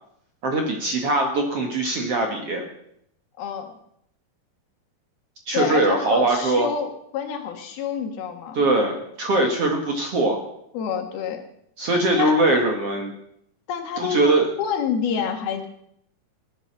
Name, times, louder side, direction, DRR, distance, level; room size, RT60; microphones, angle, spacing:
voice 1, 0.4-2.6 5.5-6.7 8.5-10.4 11.8-13.1 14.0-14.5, right 2 dB, 50° right, 2 dB, 2.0 m, -21 dB
voice 2, 3.4-3.7 5.5-8.7 10.7-11.4 12.2-12.3 13.7-14.3 14.6-15.7, left 7 dB, 75° left, 5 dB, 3.4 m, -28 dB
18.5 x 9.3 x 6.7 m, 0.74 s
omnidirectional pair, 4.5 m